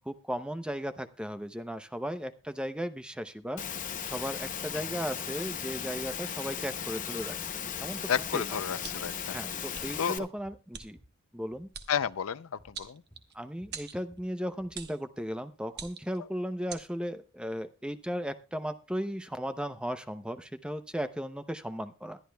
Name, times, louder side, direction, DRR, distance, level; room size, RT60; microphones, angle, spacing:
voice 1, 0.0-3.6 4.0-7.5 7.8-8.6 9.3-11.0 11.3-11.7 13.3-22.2, equal, 5° right, 0.6 m, -36 dB
Engine / Mechanisms, 3.6-10.2, left 8 dB, 40° left, 0.7 m, -37 dB
sound 1, 7.7-7.9 8.2-9.1 9.3-11.2 11.4-11.7 12.0-12.2 12.6-12.8 13.1-14.8, equal, 10° left, 3.2 m, -58 dB
voice 2, 8.1-9.4 10.0-10.2 11.9-12.5 12.8-13.0, left 7 dB, 80° left, 0.5 m, -31 dB
sound 2, 8.8-9.2 9.7-9.9 10.7-10.9 11.7-11.9 12.7-13.3 13.7-14.0 14.7-15.0 15.7-16.2 16.7-16.9, right 7 dB, 50° right, 1.2 m, -43 dB
21.5 x 11.5 x 2.3 m
head